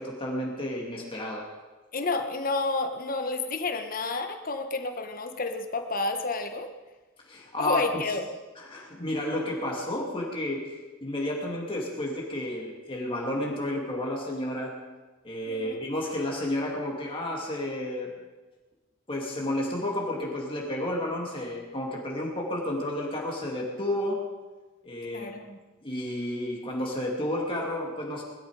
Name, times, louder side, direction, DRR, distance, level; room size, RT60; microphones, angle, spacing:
voice 1, 0.0-1.5 7.2-7.8 8.6-14.8 15.2-18.1 19.1-24.2 24.8-25.4 25.8-28.2, left 1 dB, 25° left, -2 dB, 2.5 m, -31 dB
voice 2, 1.9-6.7 7.6-8.3 15.5-15.8 25.1-25.6, left 3 dB, 45° left, 6 dB, 1.4 m, -30 dB
21.0 x 13.0 x 5.0 m, 1.2 s
head